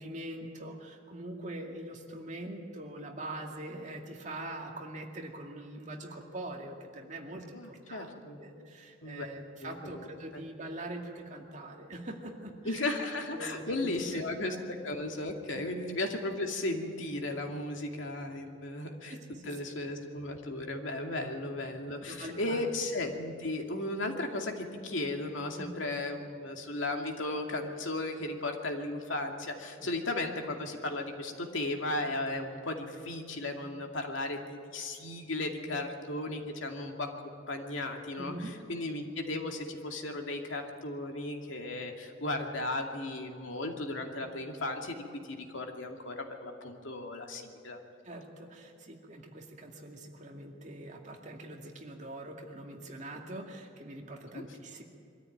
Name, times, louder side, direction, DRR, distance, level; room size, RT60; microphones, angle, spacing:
voice 1, 0.0-12.9 13.3-13.9 14.5-14.6 15.5-15.7 18.5-18.6 19.1-19.8 22.1-22.6 25.6-25.7 29.8-29.9 38.2-38.5 48.0-54.8, right 1 dB, 40° right, 1 dB, 2.3 m, -43 dB
voice 2, 7.5-8.4 9.0-9.3 9.6-10.1 10.3-10.4 12.7-19.2 19.5-45.0 45.3-47.8 54.3-54.4, left 2 dB, 90° left, 3 dB, 2.4 m, -35 dB
23.5 x 13.5 x 9.3 m, 2.6 s
head